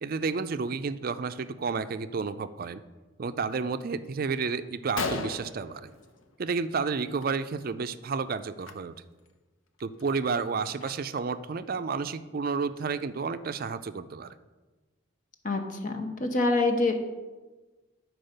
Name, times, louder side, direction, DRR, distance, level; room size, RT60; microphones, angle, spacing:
voice 1, 0.0-2.8 3.2-5.9 6.4-9.0 9.8-14.4, right 5 dB, 45° right, 12 dB, 0.4 m, -31 dB
Gunshot gunfire, 4.7-4.8 5.0-6.6 6.9-7.3 7.5-7.7 8.5-8.7 9.3-9.4 9.8-11.4, left 4 dB, 85° left, 0.8 m, -37 dB
voice 2, 15.4-16.9, left 2 dB, 40° left, 5 dB, 1.0 m, -26 dB
10.5 x 4.7 x 6.5 m, 1.2 s
head